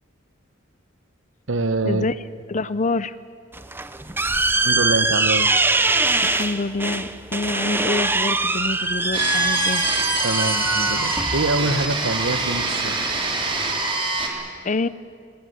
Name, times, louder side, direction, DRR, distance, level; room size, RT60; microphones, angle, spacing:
voice 1, 1.5-2.0 4.5-5.5 10.2-13.1, right 2 dB, 70° right, 12 dB, 1.1 m, -25 dB
voice 2, 2.5-3.1 6.2-9.8 14.6-14.9, left 3 dB, 40° left, 16 dB, 0.6 m, -26 dB
sound 1, 3.5-12.6, right 2 dB, 10° right, 0.7 m, -23 dB
sound 2, 9.1-14.3, right 2 dB, 25° right, 3.2 m, -25 dB
20.0 x 17.5 x 9.6 m, 2.1 s
head